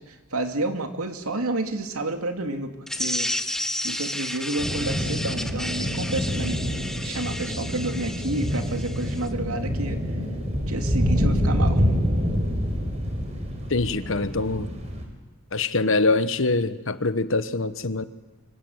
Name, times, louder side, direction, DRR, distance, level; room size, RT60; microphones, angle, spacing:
voice 1, 0.0-3.3 3.8-10.0 10.7-11.9, right 2 dB, 85° right, 2.6 m, -30 dB
sound 1, 2.9-9.3, left 1 dB, ahead, 1.0 m, -32 dB
sound 2, 4.6-15.0, equal, 30° right, 4.9 m, -26 dB
voice 2, 13.7-14.7 15.5-18.0, left 3 dB, 60° left, 1.2 m, -24 dB
25.5 x 25.5 x 8.1 m
head